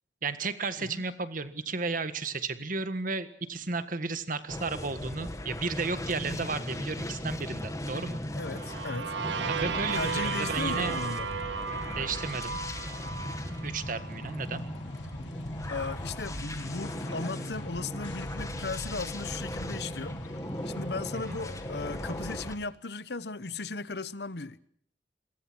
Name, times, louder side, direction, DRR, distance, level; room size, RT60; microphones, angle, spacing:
voice 1, 0.2-8.2 9.5-11.0 11.8-12.6 13.6-14.6 21.1-21.4, right 4 dB, 50° right, 1.6 m, -33 dB
sound 1, 4.4-22.5, left 1 dB, 85° left, 3.8 m, -45 dB
sound 2, 4.5-22.6, left 1 dB, 20° left, 2.0 m, -38 dB
voice 2, 8.4-9.1 9.9-11.3 15.7-20.2 20.6-24.6, left 3 dB, 65° left, 1.0 m, -36 dB
sound 3, 8.4-14.3, right 5 dB, 80° right, 1.6 m, -35 dB
28.0 x 22.5 x 6.3 m
head